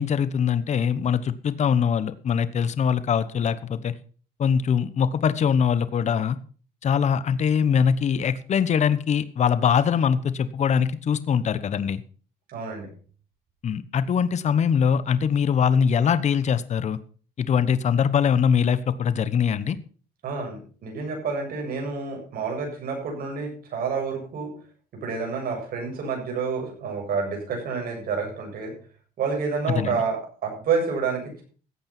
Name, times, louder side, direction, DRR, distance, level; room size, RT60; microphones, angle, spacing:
voice 1, 0.0-3.9 4.4-6.4 6.8-12.0 13.6-17.0 17.4-19.8 29.7-30.0, left 7 dB, 45° left, 14 dB, 1.1 m, -22 dB
voice 2, 12.5-12.9 20.2-24.5 24.9-28.7 29.2-31.4, right 5 dB, 60° right, 1 dB, 7.7 m, -29 dB
15.5 x 8.7 x 6.0 m, 0.41 s
cardioid pair, 110°, 17 cm